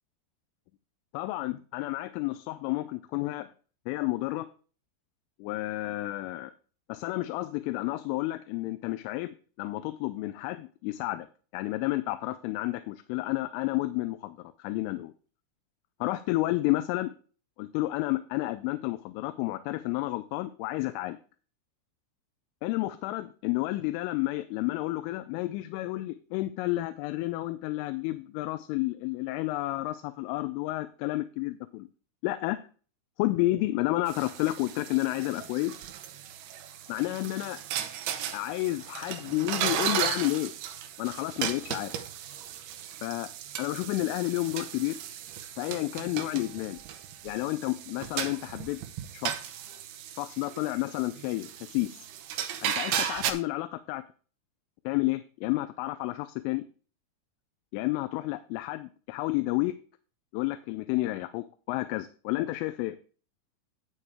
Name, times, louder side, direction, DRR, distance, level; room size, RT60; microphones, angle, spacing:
voice 1, 1.1-3.5 3.9-4.5 5.4-6.5 6.9-11.3 11.5-15.1 16.0-17.1 17.6-21.2 22.6-31.9 32.2-32.6 33.2-35.8 36.9-37.6 38.3-40.5 41.0-42.0 43.0-43.3 43.6-45.0 45.6-46.8 47.2-48.8 49.1-49.6 50.2-52.0 52.6-54.0 54.9-56.6 57.7-59.7 60.3-63.0, left 18 dB, 85° left, 11 dB, 3.0 m, -31 dB
sound 1, 34.1-53.3, right 10 dB, 85° right, 2.2 m, -36 dB
9.8 x 8.6 x 3.5 m, 0.40 s
omnidirectional pair, 5.8 m